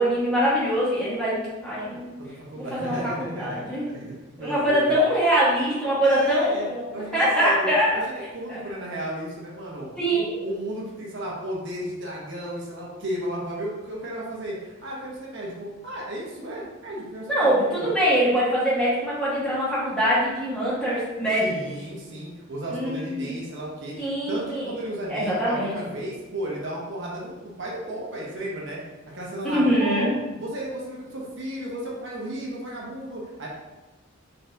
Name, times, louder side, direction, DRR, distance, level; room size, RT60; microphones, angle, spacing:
voice 1, 0.0-2.1 2.6-2.9 3.4-3.8 4.4-8.0 8.5-8.6 10.0-10.4 17.3-21.5 22.7-23.3 24.0-24.7 25.1-25.7 29.5-30.1, equal, 5° left, -9 dB, 1.5 m, -23 dB
voice 2, 2.2-5.0 6.0-8.0 8.3-17.9 21.4-28.8 29.1-30.0 30.4-33.5, right 1 dB, 65° right, -4 dB, 1.0 m, -34 dB
4.0 x 3.8 x 2.7 m, 1.1 s
head